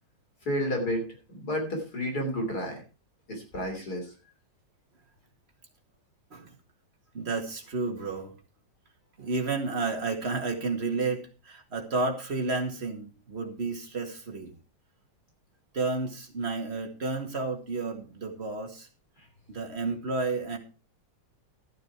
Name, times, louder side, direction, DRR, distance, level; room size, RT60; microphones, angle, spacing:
voice 1, 0.5-2.8 3.3-4.1, equal, 55° left, 3 dB, 3.8 m, -31 dB
voice 2, 7.1-8.3 9.2-14.5 15.7-18.9 19.5-20.6, right 3 dB, 35° right, 3 dB, 2.3 m, -31 dB
13.0 x 9.2 x 4.6 m, 0.33 s
omnidirectional pair, 2.0 m